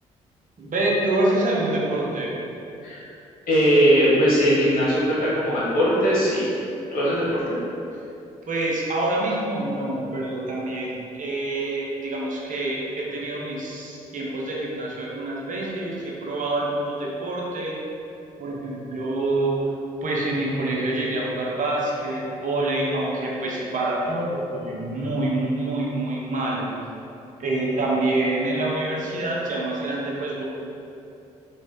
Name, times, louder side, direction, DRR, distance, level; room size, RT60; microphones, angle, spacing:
voice 1, 0.6-2.4 8.5-17.8 18.4-19.7 20.0-26.7 27.4-30.4, right 2 dB, 50° right, -4 dB, 1.0 m, -26 dB
voice 2, 3.5-6.5 6.9-7.4, equal, 60° left, -7 dB, 1.4 m, -20 dB
3.2 x 3.2 x 4.5 m, 2.8 s
hypercardioid pair, 50°, 17 cm